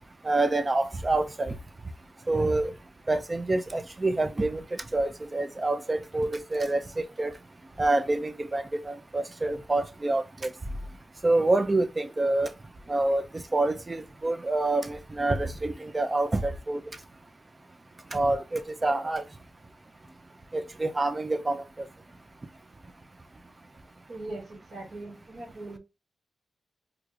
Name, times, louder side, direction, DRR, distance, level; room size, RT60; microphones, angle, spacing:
voice 1, 0.2-1.5 2.3-2.7 3.1-7.3 7.8-10.2 11.2-12.5 12.9-13.2 13.5-16.8 18.1-19.2 20.5-21.6, right 2 dB, 25° right, 0.4 m, -27 dB
voice 2, 24.1-25.8, right 2 dB, 55° right, 1.3 m, -40 dB
4.6 x 2.5 x 2.4 m
wide cardioid pair, 100°, 0 cm